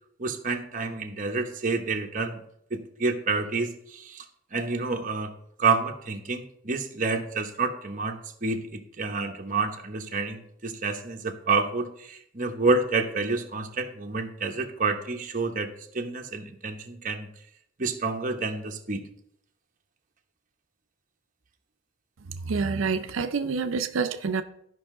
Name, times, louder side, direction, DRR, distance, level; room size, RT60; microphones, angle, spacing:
voice 1, 0.2-2.4 2.7-4.2 4.5-5.3 5.6-17.3 17.8-19.0, right 3 dB, 40° right, 3 dB, 1.0 m, -29 dB
voice 2, 22.3-24.4, right 5 dB, 80° right, 9 dB, 0.5 m, -27 dB
13.0 x 5.5 x 3.7 m, 0.73 s
head